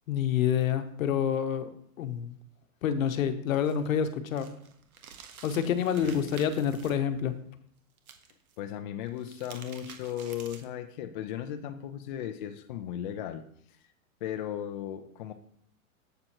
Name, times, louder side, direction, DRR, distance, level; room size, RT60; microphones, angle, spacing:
voice 1, 0.1-1.7 2.0-2.3 2.8-4.5 5.4-7.3, left 8 dB, 65° left, 10 dB, 1.1 m, -28 dB
sound 1, 3.5-6.9 8.0-8.6 9.1-10.8, right 7 dB, 75° right, 1.5 m, -50 dB
voice 2, 8.6-13.4 14.2-15.3, left 10 dB, 35° left, 6 dB, 0.5 m, -36 dB
9.4 x 7.7 x 3.0 m, 0.66 s
hypercardioid pair, 150°, 43 cm